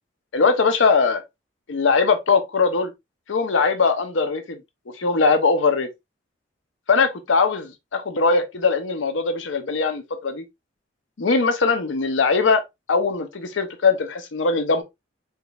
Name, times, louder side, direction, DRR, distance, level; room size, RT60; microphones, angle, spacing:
voice 1, 0.3-1.2 1.7-2.9 3.3-4.6 5.0-5.9 6.9-10.4 11.2-12.6 12.9-14.8, left 4 dB, 85° left, 0.6 m, -20 dB
4.1 x 3.6 x 2.3 m
head